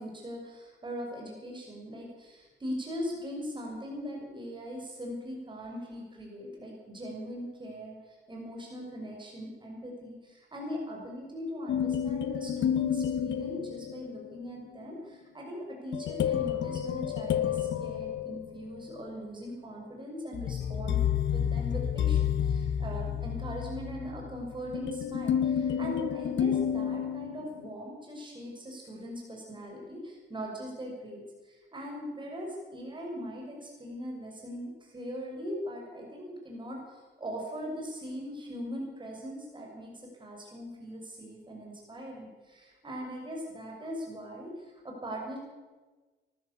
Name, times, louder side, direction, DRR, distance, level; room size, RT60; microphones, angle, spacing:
voice 1, 0.0-45.4, equal, 25° right, 0 dB, 6.4 m, -40 dB
sound 1, 11.7-14.3 15.9-18.9 20.3-27.7, left 9 dB, 70° left, 1.5 m, -30 dB
24.0 x 13.0 x 8.4 m, 1.3 s
cardioid pair, 90°, 20 cm